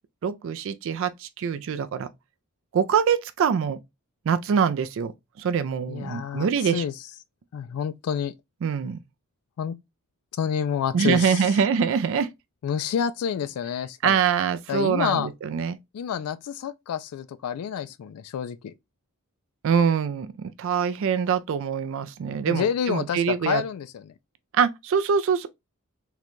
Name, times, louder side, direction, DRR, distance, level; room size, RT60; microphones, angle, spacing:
voice 1, 0.2-2.1 2.7-3.8 4.3-5.1 5.4-6.8 8.6-9.0 10.9-12.3 14.0-15.8 19.6-23.6 24.5-25.5, right 7 dB, 60° right, 0.3 m, -24 dB
voice 2, 5.9-6.9 7.5-8.3 9.6-9.8 10.3-11.6 12.6-14.2 14.7-15.3 15.9-18.7 22.5-24.1, left 8 dB, 80° left, 0.3 m, -28 dB
3.7 x 2.2 x 2.9 m
head